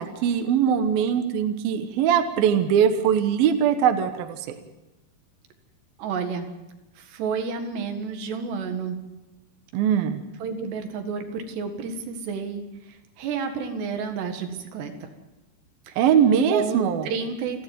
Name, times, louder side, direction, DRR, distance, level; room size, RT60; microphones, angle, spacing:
voice 1, 0.0-4.6 9.7-10.2 16.0-17.1, right 8 dB, 70° right, 8 dB, 2.8 m, -21 dB
voice 2, 6.0-6.5 7.0-9.0 10.4-12.7 13.2-15.1 15.9-16.0 16.5-16.8 17.1-17.6, right 5 dB, 85° right, 6 dB, 4.0 m, -30 dB
29.0 x 11.5 x 9.2 m, 1.0 s
omnidirectional pair, 4.7 m